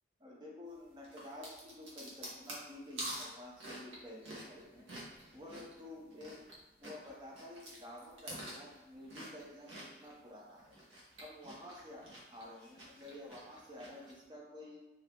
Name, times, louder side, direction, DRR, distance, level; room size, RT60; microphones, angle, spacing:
voice 1, 0.2-4.8 5.3-6.5 6.8-10.7 11.2-14.8, left 1 dB, 20° right, -3 dB, 0.7 m, -51 dB
sound 1, 1.0-6.5 6.8-10.1 10.6-14.1, right 1 dB, 80° right, 0.9 m, -48 dB
2.9 x 2.8 x 3.3 m, 1.1 s
head